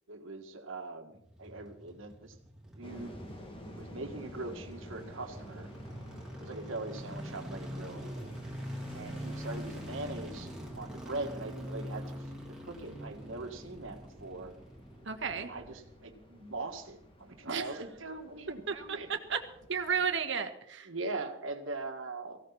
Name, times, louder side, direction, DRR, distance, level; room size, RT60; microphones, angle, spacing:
voice 1, 0.1-2.3 2.8-3.2 3.7-5.7 6.4-8.3 8.9-10.5 10.8-12.2 12.5-14.5 15.3-19.1 20.9-22.4, right 2 dB, 85° right, 5 dB, 2.0 m, -41 dB
sound 1, 1.1-16.4 16.6-16.7, equal, 5° right, 3.3 m, -44 dB
sound 2, 2.8-20.2, equal, 25° left, 2.4 m, -52 dB
voice 2, 15.0-15.5 17.5-17.7 18.7-19.4 19.7-20.9, right 6 dB, 65° right, 7 dB, 1.6 m, -33 dB
19.0 x 16.0 x 4.2 m, 0.72 s
head